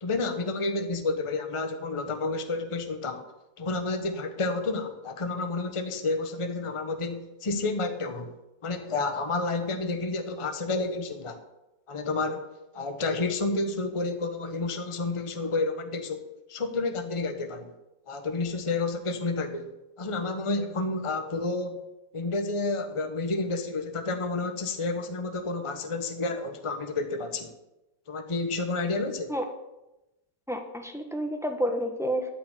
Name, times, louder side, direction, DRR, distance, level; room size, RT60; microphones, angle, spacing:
voice 1, 0.0-3.2 3.6-8.3 8.6-11.4 11.9-12.4 12.7-17.7 18.1-19.7 20.0-21.8 22.1-27.5 28.1-29.3, left 3 dB, 20° left, 7 dB, 0.9 m, -30 dB
voice 2, 30.5-32.3, equal, ahead, 4 dB, 1.1 m, -29 dB
13.5 x 5.4 x 8.8 m, 0.97 s
omnidirectional pair, 1.8 m